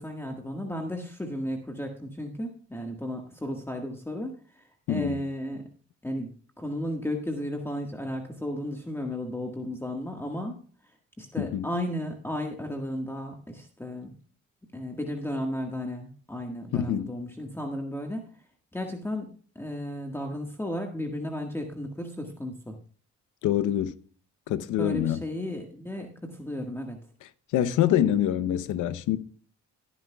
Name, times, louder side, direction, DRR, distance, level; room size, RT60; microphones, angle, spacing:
voice 1, 0.0-4.4 4.9-5.7 6.0-10.6 11.2-14.1 14.7-18.2 18.7-22.8 24.8-27.0, left 1 dB, 10° left, 1.6 m, -34 dB
voice 2, 4.9-5.2 11.4-11.7 16.7-17.1 23.4-24.0 24.5-25.2 27.2-29.2, left 11 dB, 90° left, 0.8 m, -26 dB
16.5 x 10.0 x 2.3 m
cardioid pair, 90°, 30 cm